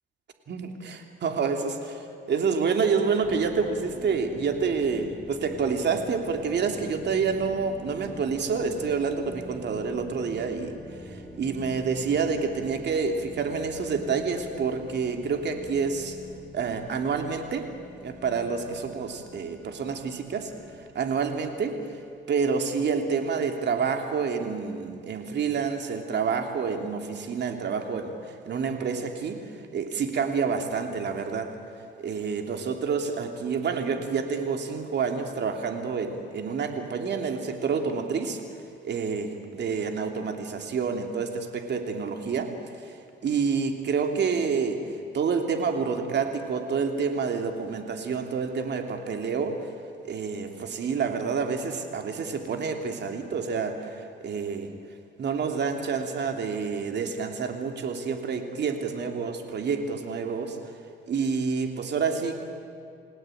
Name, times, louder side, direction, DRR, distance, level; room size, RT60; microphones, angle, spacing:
voice 1, 0.5-16.2 16.5-17.7 18.0-20.5 20.9-22.0 22.3-31.5 32.0-38.4 38.8-42.5 42.8-44.8 45.1-49.7 50.0-54.7 55.2-60.7 61.1-62.4, right 5 dB, 60° right, 5 dB, 3.2 m, -28 dB
sound 1, 3.2-22.1, left 1 dB, 5° left, 5.0 m, -45 dB
30.0 x 18.0 x 9.3 m, 2.4 s
cardioid pair, 90°, 20 cm